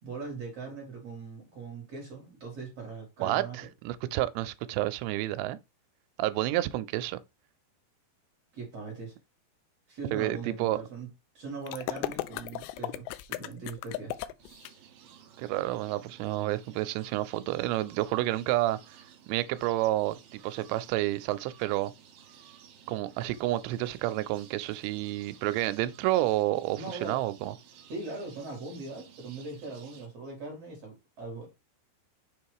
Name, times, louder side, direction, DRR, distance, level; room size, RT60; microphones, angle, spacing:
voice 1, 0.0-3.6 8.5-9.2 9.9-11.1 11.3-14.2 26.8-27.2 27.8-31.5, right 3 dB, 45° right, 2.4 m, -40 dB
voice 2, 3.2-5.6 6.2-7.2 10.1-10.8 15.4-18.8 19.3-21.9 22.9-27.5, right 15 dB, 85° right, 2.8 m, -30 dB
sound 1, 11.7-14.7, left 15 dB, 85° left, 2.6 m, -36 dB
sound 2, 14.4-30.1, right 8 dB, 70° right, 2.7 m, -55 dB
7.0 x 3.0 x 4.8 m
omnidirectional pair, 5.0 m